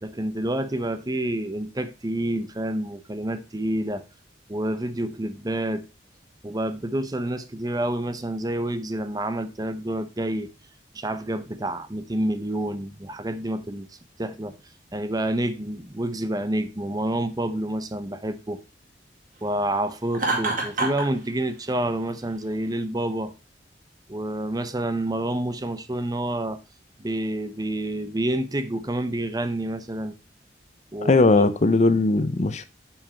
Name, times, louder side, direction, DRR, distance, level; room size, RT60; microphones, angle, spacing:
voice 1, 0.0-4.0 4.5-5.8 6.4-10.5 10.9-13.9 14.2-14.5 14.9-18.6 19.4-23.3 24.1-26.6 27.0-30.2 30.9-31.2, right 1 dB, 20° right, 0.7 m, -28 dB
Laughter, 20.1-21.1, right 3 dB, 50° right, 2.5 m, -25 dB
voice 2, 31.0-32.6, left 3 dB, 40° left, 0.6 m, -19 dB
7.5 x 5.8 x 4.4 m
head